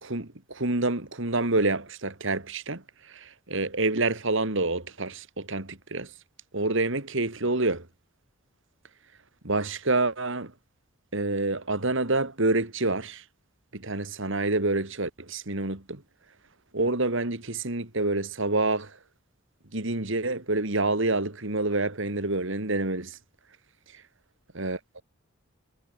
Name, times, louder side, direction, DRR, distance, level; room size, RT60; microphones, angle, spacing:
voice 1, 0.0-6.1 6.5-7.9 9.4-10.5 11.1-13.2 13.7-16.0 16.7-19.0 19.7-23.2 24.5-25.0, right 2 dB, 65° right, 2.6 m, -27 dB
head